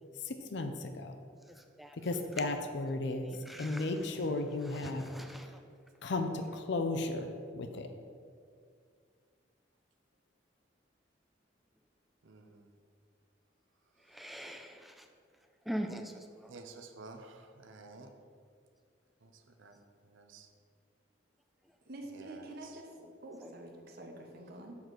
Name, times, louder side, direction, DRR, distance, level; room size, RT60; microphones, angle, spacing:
voice 1, 0.5-1.1 2.0-3.3 3.6-5.0 6.0-7.3 7.5-7.9, left 2 dB, 65° left, 6 dB, 0.5 m, -34 dB
voice 2, 3.3-3.9 4.8-5.4 14.2-14.7 15.7-16.0 23.4-23.5, equal, ahead, 5 dB, 0.4 m, -40 dB
voice 3, 12.2-12.6 16.5-18.1 19.2-19.3 19.6-19.8 20.0-20.5 22.1-22.8, right 3 dB, 90° right, 6 dB, 0.7 m, -51 dB
voice 4, 21.9-22.9 23.2-24.8, right 1 dB, 55° right, 2 dB, 1.0 m, -47 dB
7.1 x 3.9 x 6.3 m, 2.2 s
head